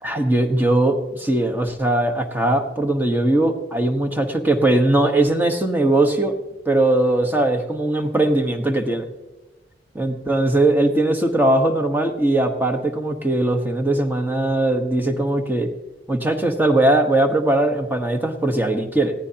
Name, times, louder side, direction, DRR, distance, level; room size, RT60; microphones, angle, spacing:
voice 1, 0.0-6.3 6.6-9.1 9.9-15.7 16.1-19.1, right 2 dB, 10° right, 5 dB, 1.2 m, -20 dB
19.5 x 15.5 x 2.9 m, 1.1 s
head